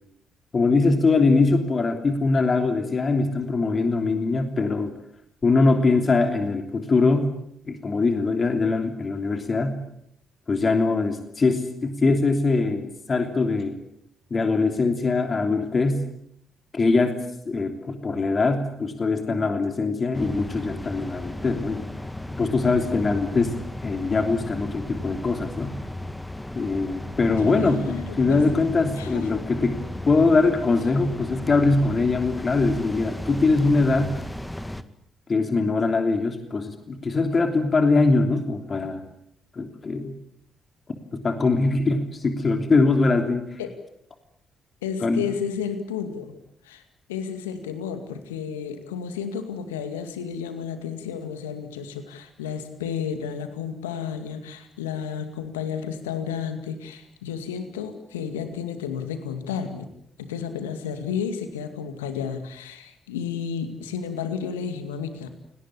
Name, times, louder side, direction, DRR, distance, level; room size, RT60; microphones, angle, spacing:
voice 1, 0.5-4.9 5.4-7.3 7.7-9.8 10.5-13.8 14.3-16.0 16.7-17.2 17.4-21.8 22.4-23.5 23.8-25.7 26.5-29.8 30.0-34.1 35.3-39.0 39.5-40.1 41.1-43.6 45.0-45.2, left 3 dB, 40° left, 5 dB, 3.2 m, -22 dB
sound 1, 20.1-34.8, left 1 dB, 10° left, 2.1 m, -35 dB
voice 2, 27.4-28.4 29.0-29.3 43.6-43.7 44.8-46.3 46.6-46.8 47.1-59.9 60.2-65.3, left 7 dB, 80° left, 8 dB, 2.2 m, -32 dB
29.5 x 19.0 x 8.5 m, 0.73 s
figure-of-eight pair, 40°, 0 cm